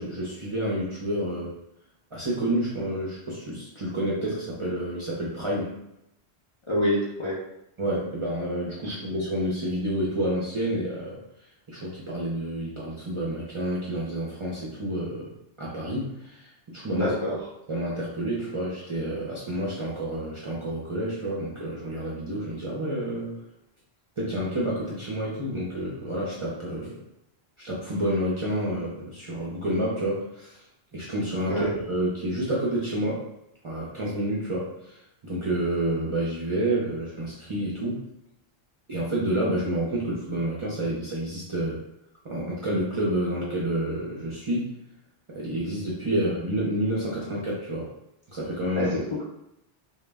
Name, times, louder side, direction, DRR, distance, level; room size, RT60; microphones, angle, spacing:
voice 1, 0.0-1.5 2.1-5.8 7.8-11.2 11.7-15.3 15.6-17.1 17.7-23.3 24.2-27.0 27.6-30.6 30.9-33.3 33.6-38.1 38.9-41.8 42.2-44.7 45.3-47.9 48.3-49.0, right 1 dB, 40° right, -6 dB, 0.4 m, -29 dB
voice 2, 6.7-7.4 8.8-9.0 16.8-17.4 31.5-31.7 48.8-48.9, left 1 dB, 40° left, -7 dB, 0.4 m, -26 dB
2.2 x 2.0 x 3.3 m, 0.83 s
omnidirectional pair, 1.1 m